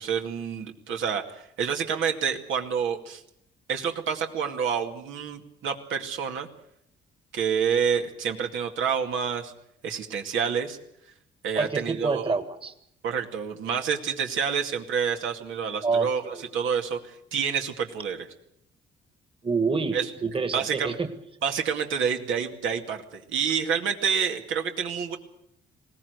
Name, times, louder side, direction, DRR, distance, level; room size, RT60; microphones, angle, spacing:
voice 1, 0.0-3.2 3.7-6.5 7.3-9.5 9.8-10.8 11.4-12.3 13.0-18.3 19.9-20.1 20.5-21.0 21.4-25.2, right 7 dB, 85° right, 4 dB, 2.3 m, -28 dB
voice 2, 11.6-12.7 15.8-16.4 19.4-21.1, right 4 dB, 25° right, 9 dB, 1.8 m, -27 dB
21.0 x 17.5 x 8.0 m, 0.75 s
cardioid pair, 90°, 20 cm